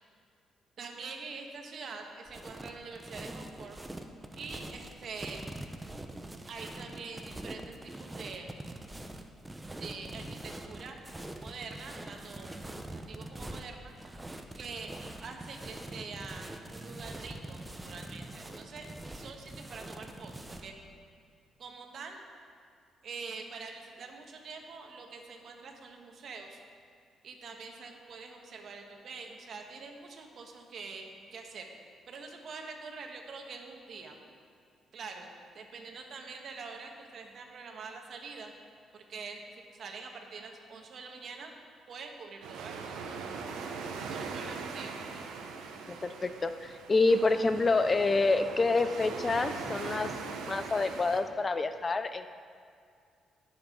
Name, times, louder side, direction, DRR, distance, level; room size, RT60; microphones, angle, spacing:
voice 1, 0.8-3.8 4.4-5.4 6.5-8.6 9.8-11.0 11.4-12.7 13.1-13.9 14.2-20.7 21.6-22.2 23.0-26.6 27.2-31.7 32.1-34.2 34.9-35.3 35.5-38.5 38.9-39.4 39.7-41.5 41.9-43.0 44.1-44.9, right 4 dB, 60° right, 3 dB, 1.5 m, -45 dB
sound 1, 2.3-20.7, right 1 dB, 15° right, 0.8 m, -44 dB
sound 2, 42.4-51.2, right 4 dB, 90° right, 1.0 m, -40 dB
voice 2, 45.9-50.1 50.5-52.3, left 3 dB, 30° left, 10 dB, 0.4 m, -27 dB
19.5 x 7.3 x 3.9 m, 2.2 s
cardioid pair, 90°, 0 cm